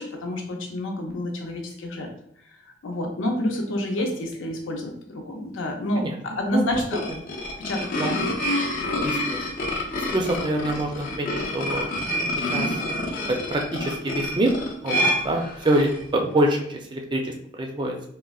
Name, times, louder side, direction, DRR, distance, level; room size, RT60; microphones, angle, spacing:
voice 1, 0.0-2.1 2.8-7.0 7.6-8.3, left 1 dB, 85° left, 2 dB, 0.6 m, -28 dB
sound 1, 6.7-16.0, left 1 dB, 45° left, 0.5 m, -28 dB
voice 2, 9.0-9.4 9.7-11.9 12.5-12.8 13.3-14.5 14.8-18.1, right 1 dB, 25° right, 2 dB, 0.4 m, -25 dB
3.6 x 2.1 x 2.3 m, 0.69 s
head